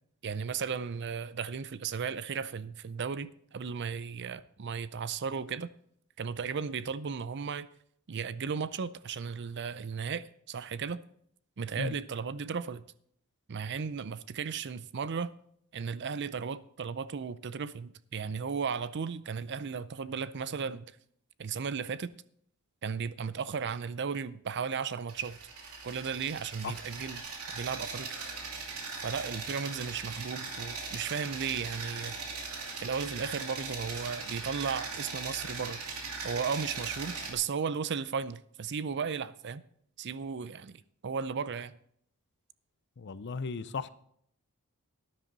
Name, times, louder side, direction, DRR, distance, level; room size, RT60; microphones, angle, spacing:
voice 1, 0.2-5.7 6.2-7.7 8.1-11.0 11.6-12.8 13.5-15.3 15.7-20.9 21.4-22.1 22.8-25.4 25.8-27.2 27.5-28.1 29.0-32.2 32.8-35.8 36.2-39.6 40.0-41.7, right 6 dB, 55° right, 0.5 m, -35 dB
sound 1, 25.1-37.3, right 4 dB, 85° right, 2.6 m, -40 dB
voice 2, 43.0-43.9, left 4 dB, 50° left, 0.6 m, -36 dB
12.5 x 10.5 x 4.0 m
head